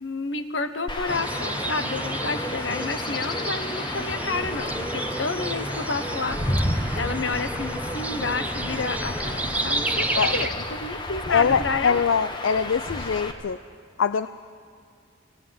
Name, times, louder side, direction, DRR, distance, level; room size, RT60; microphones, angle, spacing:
voice 1, 0.0-6.4 6.7-10.0 10.3-12.0, left 3 dB, 65° left, 10 dB, 1.1 m, -30 dB
Chirp tweet / Wind / Stream, 0.9-13.3, left 1 dB, 25° left, 1.3 m, -32 dB
sound 1, 1.1-10.5, right 1 dB, 10° right, 0.7 m, -31 dB
voice 2, 11.3-13.6 14.0-14.3, left 6 dB, 80° left, 12 dB, 0.4 m, -23 dB
18.0 x 17.0 x 9.4 m, 2.3 s
head